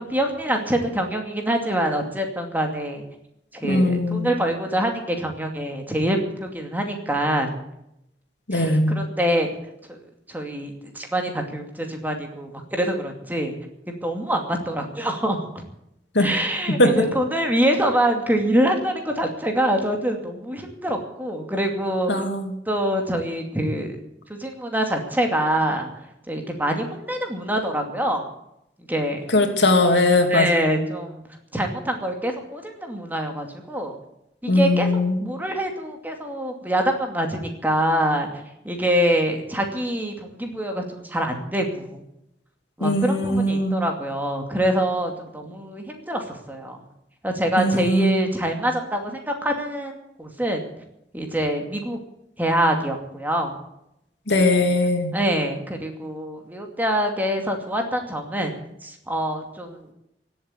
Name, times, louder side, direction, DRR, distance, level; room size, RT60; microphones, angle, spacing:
voice 1, 0.0-3.0 3.5-7.5 8.5-9.5 9.9-10.0 10.3-13.6 13.9-15.5 16.2-22.1 22.7-24.0 24.3-25.9 26.3-28.2 28.9-29.3 30.3-31.2 31.5-34.0 34.4-42.0 42.8-46.8 47.2-50.6 51.1-52.0 52.4-53.6 55.1-58.5 58.8-59.9, right 1 dB, 10° right, 3 dB, 2.4 m, -25 dB
voice 2, 3.6-4.3 8.5-8.9 16.1-16.3 16.7-16.9 22.1-22.5 29.3-30.5 34.5-35.2 42.8-43.8 47.6-48.3 54.3-55.1, left 1 dB, 80° left, 5 dB, 2.7 m, -20 dB
16.5 x 8.1 x 9.8 m, 0.82 s
head